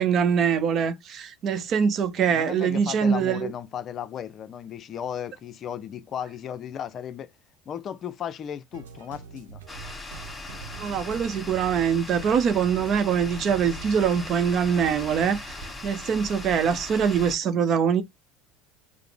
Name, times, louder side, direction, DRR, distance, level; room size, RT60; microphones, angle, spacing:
voice 1, 0.0-3.5 10.8-18.0, right 7 dB, 50° right, 0.6 m, -23 dB
voice 2, 2.3-7.3 7.7-9.6, left 9 dB, 45° left, 0.4 m, -35 dB
sound 1, 8.7-15.7, right 6 dB, 90° right, 0.8 m, -44 dB
sound 2, 9.7-17.3, left 2 dB, 20° left, 1.8 m, -39 dB
4.8 x 2.0 x 3.3 m
hypercardioid pair, 85°, 0 cm